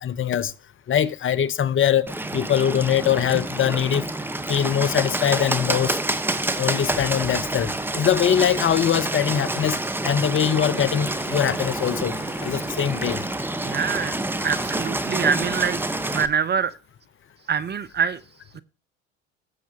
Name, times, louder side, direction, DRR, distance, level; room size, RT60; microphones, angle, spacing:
voice 1, 0.0-0.5 0.9-4.1 4.5-6.0 6.6-9.8 10.0-12.2 12.4-13.8, left 9 dB, 40° left, 0.8 m, -22 dB
Bird, 2.1-16.3, right 1 dB, 5° right, 1.1 m, -28 dB
sound 1, 11.0-13.3, left 6 dB, 55° left, 3.5 m, -46 dB
voice 2, 13.6-14.2 14.4-15.8 16.1-16.7 17.5-18.2 18.5-18.6, right 7 dB, 30° right, 0.7 m, -24 dB
18.5 x 7.3 x 2.9 m
hypercardioid pair, 70°, 33 cm